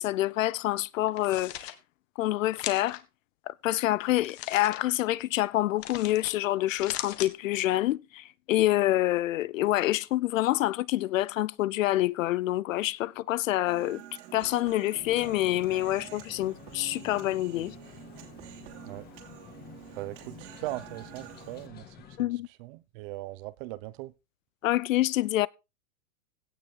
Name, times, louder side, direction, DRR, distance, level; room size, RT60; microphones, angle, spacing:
voice 1, 0.0-1.7 2.2-3.0 3.5-14.0 14.3-17.7 22.2-22.5 24.6-25.5, left 15 dB, 60° left, 0.7 m, -27 dB
sound 1, 1.1-1.7 2.6-3.0 4.2-4.8 5.8-6.3 6.7-7.3, left 13 dB, 45° left, 1.6 m, -38 dB
Human voice, 13.7-21.7, right 11 dB, 55° right, 3.0 m, -48 dB
sound 2, 14.9-22.2, left 9 dB, 20° left, 1.9 m, -50 dB
voice 2, 20.0-22.3 22.6-24.1, right 18 dB, 35° right, 0.9 m, -39 dB
16.5 x 6.6 x 3.8 m
supercardioid pair, 150°, 43 cm